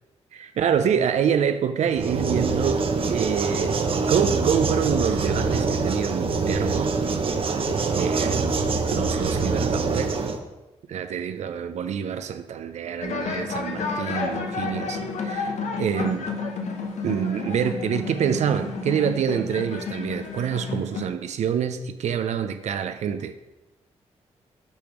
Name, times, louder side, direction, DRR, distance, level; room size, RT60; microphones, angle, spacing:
voice 1, 0.6-3.8 4.1-7.0 7.5-8.5 8.9-10.2 10.9-16.2 17.0-23.3, right 8 dB, 75° right, 0.5 m, -26 dB
sound 1, 2.0-10.4, right 4 dB, 50° right, 0.8 m, -25 dB
sound 2, 13.0-21.1, left 4 dB, 75° left, 1.0 m, -31 dB
8.3 x 3.4 x 5.9 m
cardioid pair, 75°, 12 cm